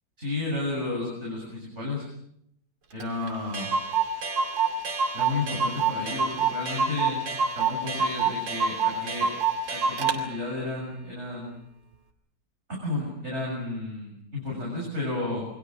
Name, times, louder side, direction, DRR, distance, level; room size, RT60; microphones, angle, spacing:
voice 1, 0.2-2.1 2.9-3.8 5.1-9.3 9.7-11.7 12.7-15.5, left 2 dB, 35° right, -3 dB, 7.5 m, -32 dB
Clock, 3.0-3.1 3.3-3.4 3.5-10.2, right 5 dB, 70° right, 3.3 m, -26 dB
28.5 x 23.0 x 6.4 m, 0.74 s
omnidirectional pair, 2.1 m